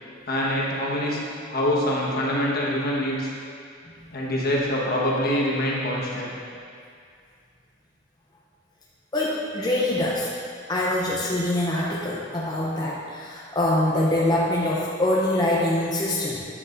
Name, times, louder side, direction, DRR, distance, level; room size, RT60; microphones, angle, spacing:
voice 1, 0.3-1.2 1.5-3.3 4.1-6.3, left 1 dB, 55° left, -4 dB, 1.3 m, -25 dB
voice 2, 9.1-10.3 10.7-16.4, left 1 dB, 20° left, -5 dB, 0.6 m, -24 dB
9.0 x 8.0 x 2.6 m, 2.3 s
head